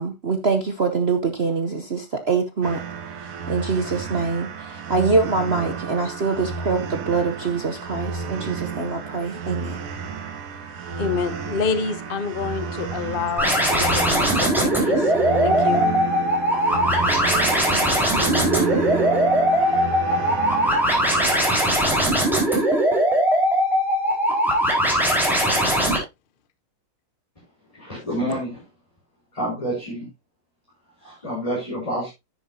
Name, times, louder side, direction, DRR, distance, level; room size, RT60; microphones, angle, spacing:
voice 1, 0.0-2.8 3.5-9.8, right 4 dB, 55° right, 0.7 m, -24 dB
sound 1, 2.6-21.3, right 5 dB, 80° right, 2.1 m, -31 dB
voice 2, 11.0-15.1 15.4-15.9, left 5 dB, 55° left, 0.5 m, -28 dB
sound 2, 13.4-26.0, equal, ahead, 4.3 m, -20 dB
voice 3, 27.7-28.6 29.3-30.1 31.0-32.1, equal, 15° left, 4.4 m, -28 dB
10.5 x 9.4 x 2.8 m
omnidirectional pair, 2.4 m